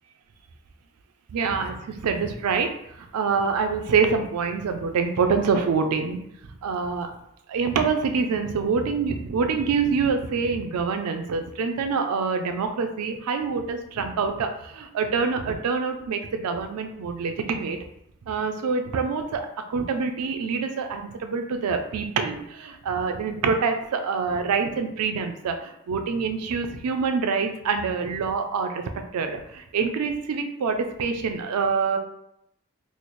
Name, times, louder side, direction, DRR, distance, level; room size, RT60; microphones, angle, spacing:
voice 1, 1.3-6.2 6.6-7.1 7.5-17.8 18.3-28.8 29.1-32.0, right 5 dB, 85° right, 6 dB, 0.4 m, -26 dB
3.1 x 2.0 x 4.1 m, 0.77 s
head